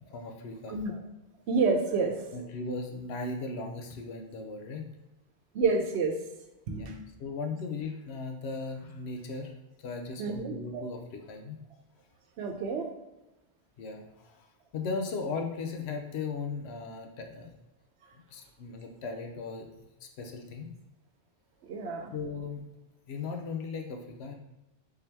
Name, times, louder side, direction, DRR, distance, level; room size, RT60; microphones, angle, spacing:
voice 1, 0.1-0.8 2.3-4.9 6.7-6.9 7.2-9.5 9.8-11.6 13.8-14.5 14.7-17.5 18.1-19.6 20.0-20.7 22.1-22.7 23.1-24.3, left 4 dB, 75° left, 4 dB, 0.8 m, -37 dB
voice 2, 1.5-2.3 5.5-6.1 6.7-7.0 10.2-10.8 12.4-12.9 21.6-22.1, right 4 dB, 85° right, 4 dB, 0.9 m, -29 dB
3.7 x 2.8 x 3.3 m, 0.97 s
omnidirectional pair, 1.1 m